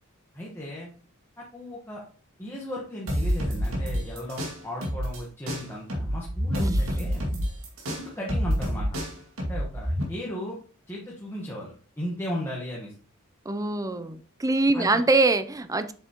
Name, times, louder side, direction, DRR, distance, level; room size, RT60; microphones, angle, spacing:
voice 1, 0.3-0.9 1.4-2.0 2.4-7.3 7.9-9.0 9.4-10.6 10.9-12.9 14.7-15.0, left 1 dB, 10° left, 1.3 m, -36 dB
sound 1, 3.1-5.2 5.5-10.0, equal, 70° right, 2.3 m, -28 dB
voice 2, 13.5-15.9, right 2 dB, 15° right, 0.5 m, -24 dB
7.9 x 6.9 x 3.0 m
head